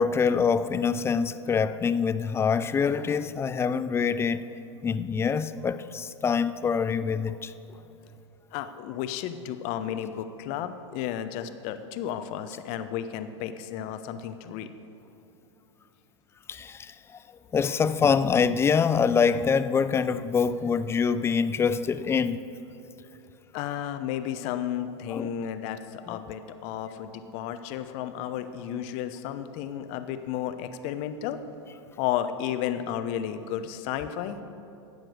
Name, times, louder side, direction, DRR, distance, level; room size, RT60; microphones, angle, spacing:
voice 1, 0.0-4.4 4.8-7.5 16.5-16.9 17.5-22.5 25.1-25.3 26.1-26.2, left 6 dB, 15° left, 13 dB, 0.4 m, -25 dB
voice 2, 8.5-14.7 23.5-31.4 32.0-34.4, left 10 dB, 50° left, 10 dB, 0.9 m, -33 dB
13.5 x 8.9 x 6.4 m, 2.8 s
hypercardioid pair, 110°, 15 cm